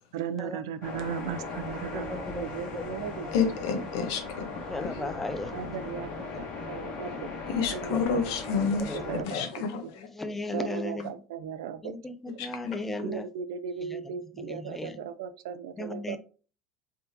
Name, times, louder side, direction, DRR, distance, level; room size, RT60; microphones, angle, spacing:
voice 1, 0.1-3.3 3.7-3.8 5.0-5.1 5.5-7.3 7.7-8.2 8.5-9.9 10.5-11.9 13.0-16.2, right 7 dB, 90° right, 13 dB, 0.3 m, -37 dB
sound 1, 0.8-9.2, left 3 dB, 55° left, 1.4 m, -38 dB
voice 2, 1.9-2.4 2.7-2.9 4.7-5.5 6.3-6.4 7.8-8.2 8.8-9.4 10.0-11.1 11.8-13.2 13.9-14.0 14.4-15.0 15.8-16.2, left 2 dB, 10° left, 10 dB, 0.4 m, -36 dB
voice 3, 3.3-4.6 4.9-5.0 7.5-10.1 12.4-12.8, left 5 dB, 75° left, 6 dB, 0.7 m, -30 dB
3.4 x 2.8 x 2.6 m, 0.37 s
supercardioid pair, 120°, 2 cm